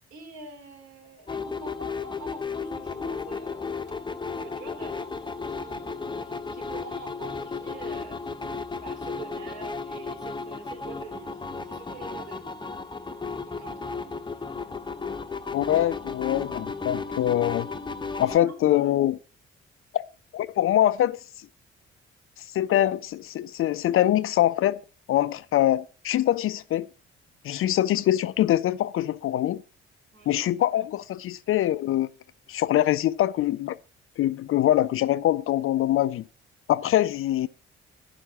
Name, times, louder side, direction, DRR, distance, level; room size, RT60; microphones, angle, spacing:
voice 1, 0.1-5.1 5.5-8.2 8.8-11.4 11.7-12.7 13.5-14.4 18.2-18.9 30.1-30.4, right 4 dB, 60° right, 3.9 m, -45 dB
sound 1, 1.3-18.4, left 4 dB, 15° left, 0.8 m, -34 dB
voice 2, 15.5-17.7 18.2-19.2 19.9-20.0 20.3-21.2 22.5-24.8 25.1-26.9 27.4-29.6 30.3-32.1 32.5-33.8 34.2-36.2 36.7-37.5, left 13 dB, 45° left, 0.5 m, -23 dB
11.0 x 6.2 x 6.0 m
figure-of-eight pair, 40°, 31 cm